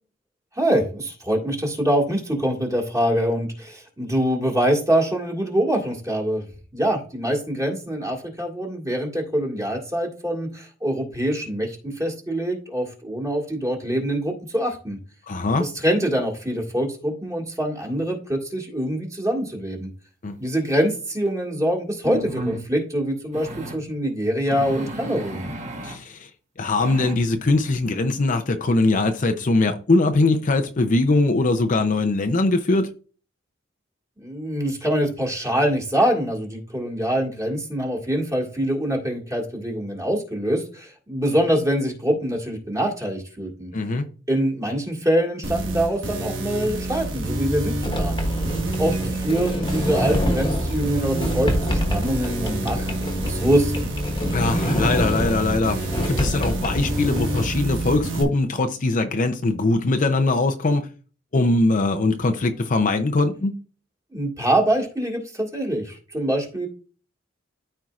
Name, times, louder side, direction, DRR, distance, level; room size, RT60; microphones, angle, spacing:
voice 1, 0.6-6.5 6.7-15.0 15.6-19.9 20.4-25.5 34.2-43.7 44.3-48.2 48.8-53.8 64.1-66.7, right 1 dB, 20° right, 1.9 m, -24 dB
voice 2, 15.3-15.6 20.2-20.4 25.8-26.3 26.6-32.9 43.7-44.1 54.3-60.9 61.3-63.5, left 2 dB, 45° left, 0.6 m, -21 dB
sound 1, 21.3-21.4 22.0-22.6 23.3-23.8 24.5-26.0 26.8-27.2, right 1 dB, 40° right, 1.4 m, -33 dB
sound 2, 45.4-58.2, right 2 dB, 75° right, 1.4 m, -28 dB
Sliding door, 47.8-57.5, left 1 dB, 25° left, 1.3 m, -27 dB
13.0 x 4.5 x 2.4 m
head